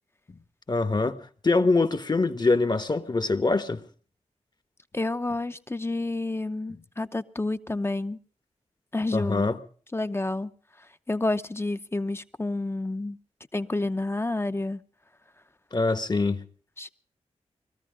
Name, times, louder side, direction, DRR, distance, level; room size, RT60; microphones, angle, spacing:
voice 1, 0.7-1.2 1.4-3.8 9.1-9.6 15.7-16.4, left 3 dB, 35° left, 1.3 m, -24 dB
voice 2, 4.9-8.2 8.9-9.5 9.9-10.5 11.1-13.2 13.5-14.8 16.8-16.9, left 2 dB, 20° left, 0.8 m, -29 dB
20.5 x 13.5 x 5.1 m
cardioid pair, 50°, 12 cm